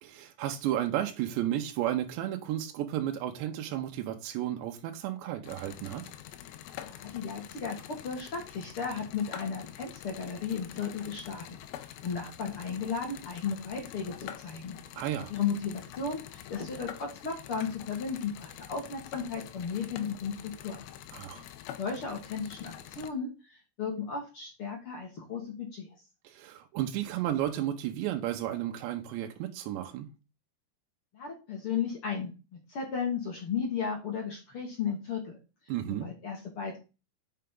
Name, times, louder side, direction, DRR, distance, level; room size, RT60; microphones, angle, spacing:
voice 1, 0.0-6.0 15.0-15.3 21.1-21.5 26.2-30.1 35.7-36.1, right 12 dB, 85° right, 3.2 m, -33 dB
sound 1, 5.5-23.1, left 11 dB, 90° left, 3.1 m, -46 dB
voice 2, 6.8-11.5 12.0-14.8 15.3-20.8 21.8-25.9 31.1-32.3 32.7-35.4 36.0-36.8, left 6 dB, 50° left, 1.7 m, -35 dB
8.1 x 5.7 x 3.8 m
omnidirectional pair, 5.0 m